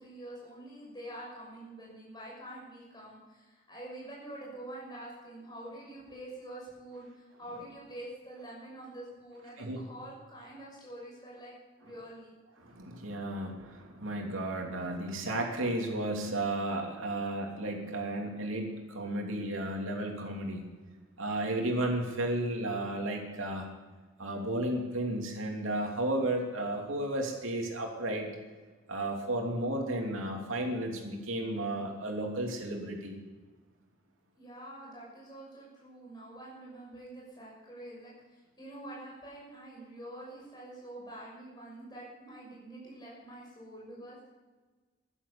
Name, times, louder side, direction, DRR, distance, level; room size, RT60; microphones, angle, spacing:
voice 1, 0.0-12.3 34.4-44.3, right 1 dB, 20° left, -4 dB, 6.5 m, -46 dB
voice 2, 12.6-20.7 21.2-23.7 24.2-28.3 28.9-33.1, right 1 dB, 75° right, 2 dB, 2.9 m, -33 dB
14.5 x 11.5 x 6.9 m, 1.3 s
head